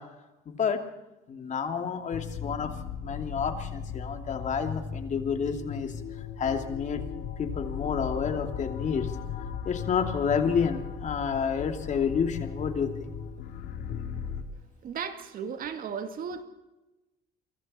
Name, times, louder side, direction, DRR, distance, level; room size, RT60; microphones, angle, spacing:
voice 1, 0.5-0.8 1.3-2.7 3.0-5.9 6.4-9.1 9.6-13.1, left 6 dB, 45° left, 5 dB, 2.8 m, -29 dB
sound 1, 2.1-14.4, left 7 dB, 80° left, 2.8 m, -37 dB
voice 2, 14.8-16.4, right 6 dB, 55° right, 7 dB, 2.2 m, -35 dB
28.0 x 24.5 x 4.4 m, 1.0 s
cardioid pair, 110°, 17 cm